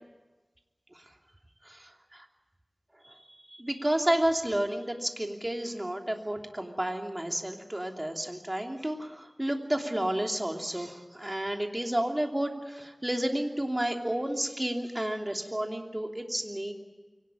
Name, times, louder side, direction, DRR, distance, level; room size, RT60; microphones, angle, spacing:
voice 1, 1.7-2.2 3.0-3.1 3.5-16.7, right 1 dB, 25° right, 3 dB, 3.0 m, -31 dB
24.0 x 18.5 x 9.0 m, 1.2 s
wide cardioid pair, 45°, 0 cm